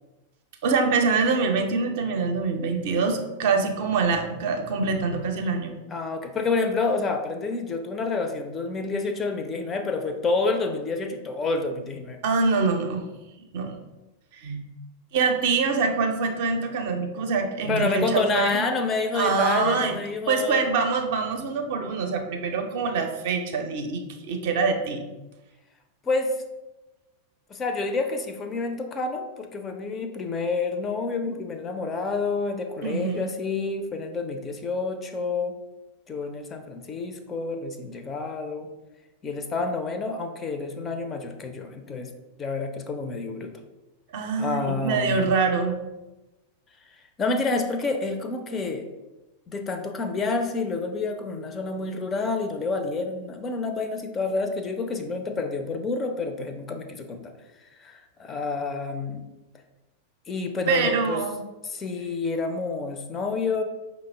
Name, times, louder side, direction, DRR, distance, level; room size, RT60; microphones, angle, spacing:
voice 1, 0.6-5.7 12.2-13.0 13.5-13.7 14.3-14.6 15.1-18.6 19.1-20.0 20.3-25.0 32.8-33.2 44.1-45.8 60.7-61.4, right 4 dB, 50° right, 4 dB, 0.5 m, -25 dB
voice 2, 5.9-12.2 17.7-20.6 26.0-26.4 27.5-35.6 36.1-38.7 39.2-42.1 42.4-43.5 44.4-45.3 47.2-48.9 49.5-57.3 57.6-59.2 60.3-61.2 61.6-63.6, left 3 dB, 25° left, 6 dB, 0.4 m, -28 dB
5.0 x 2.0 x 3.3 m, 1.1 s
figure-of-eight pair, 90°, 0 cm